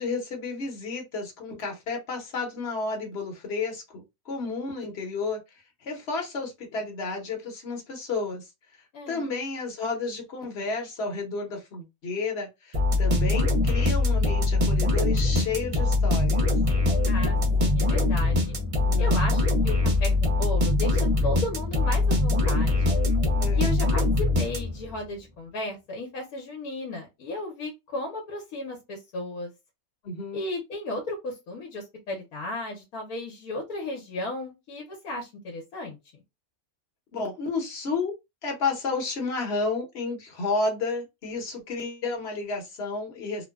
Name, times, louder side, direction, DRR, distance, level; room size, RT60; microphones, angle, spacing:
voice 1, 0.0-5.4 5.8-8.5 9.1-16.5 18.8-19.2 23.4-23.7 30.0-30.4 37.1-38.1 38.4-43.5, left 3 dB, 50° left, 1.0 m, -31 dB
voice 2, 8.9-9.3 17.0-18.6 19.0-19.8 20.0-23.0 23.5-29.5 30.3-36.0, left 2 dB, 80° left, 1.2 m, -35 dB
sound 1, 12.7-25.0, left 2 dB, 55° right, 0.3 m, -23 dB
sound 2, 14.4-22.9, left 7 dB, 75° right, 1.2 m, -48 dB
2.9 x 2.1 x 2.3 m
omnidirectional pair, 1.5 m